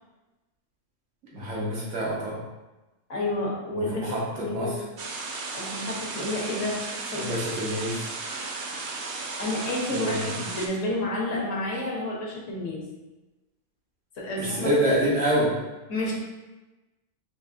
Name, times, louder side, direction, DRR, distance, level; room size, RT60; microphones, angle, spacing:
voice 1, 1.3-2.4 3.7-4.7 7.1-8.0 9.9-10.3 14.4-15.5, right 1 dB, 80° right, -5 dB, 1.4 m, -26 dB
voice 2, 3.1-4.8 5.5-6.8 7.1-7.3 9.4-12.8 14.2-15.0 15.9-16.1, left 1 dB, 85° left, -3 dB, 1.3 m, -30 dB
sound 1, 5.0-10.7, right 3 dB, 60° right, 0.7 m, -35 dB
4.7 x 2.7 x 2.5 m, 1.1 s
omnidirectional pair, 1.3 m